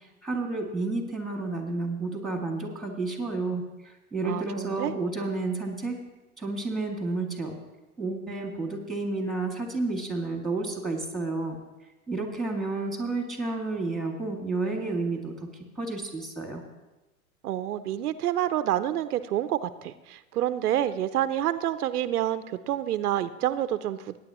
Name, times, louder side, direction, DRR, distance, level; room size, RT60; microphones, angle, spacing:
voice 1, 0.0-6.0 6.4-7.6 8.0-11.6 12.1-15.5 15.8-16.6, right 3 dB, ahead, 2 dB, 2.2 m, -31 dB
voice 2, 4.2-4.9 17.4-24.2, right 12 dB, 85° right, 12 dB, 0.6 m, -28 dB
18.0 x 9.4 x 3.0 m, 1.1 s
hypercardioid pair, 105°, 44 cm